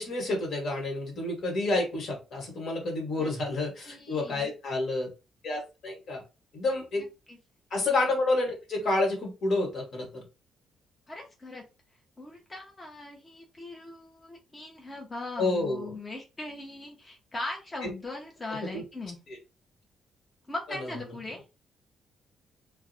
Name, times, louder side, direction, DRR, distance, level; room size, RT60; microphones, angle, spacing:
voice 1, 0.0-5.1 5.4-6.2 6.5-7.1 7.7-10.2 15.4-16.0 18.6-18.8 20.7-20.8, left 2 dB, 65° left, 0 dB, 1.2 m, -29 dB
voice 2, 3.9-4.5 7.3-7.4 11.1-11.6 12.2-19.2 20.5-21.4, left 2 dB, 25° left, 0 dB, 0.6 m, -40 dB
2.5 x 2.0 x 2.6 m, 0.29 s
cardioid pair, 90°, 0 cm